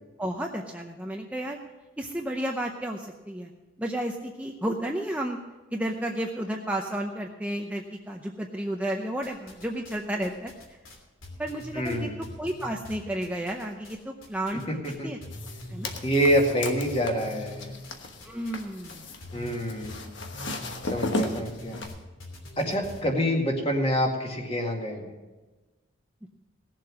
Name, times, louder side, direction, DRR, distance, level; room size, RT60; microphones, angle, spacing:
voice 1, 0.2-1.6 2.0-3.5 3.8-5.4 5.7-10.5 11.4-12.1 12.4-14.6 15.0-15.2 15.7-15.9 18.2-19.1 21.2-21.6 26.2-26.3, right 1 dB, 5° right, 1 dB, 0.6 m, -32 dB
sound 1, 9.2-10.0 10.2-14.0 14.2-15.0 15.2-23.0, left 1 dB, 75° left, 3.0 m, -43 dB
voice 2, 11.7-12.2 15.0-15.1 16.0-17.7 19.3-20.1 20.8-21.8 22.6-25.1, equal, 25° left, 1 dB, 2.1 m, -26 dB
sound 2, 15.3-21.9, left 1 dB, 60° left, 1.3 m, -36 dB
17.5 x 7.5 x 6.2 m, 1.2 s
head